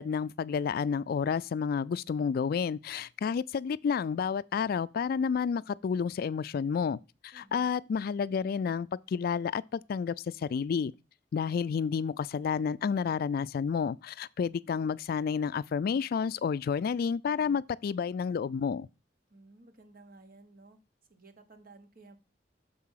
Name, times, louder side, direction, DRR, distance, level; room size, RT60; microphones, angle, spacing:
voice 1, 0.0-7.0 7.2-10.9 11.3-18.9, left 6 dB, 55° left, 0.3 m, -30 dB
voice 2, 7.3-7.8 19.3-20.8 21.1-22.2, right 2 dB, 55° right, 1.2 m, -55 dB
6.7 x 4.8 x 5.6 m
head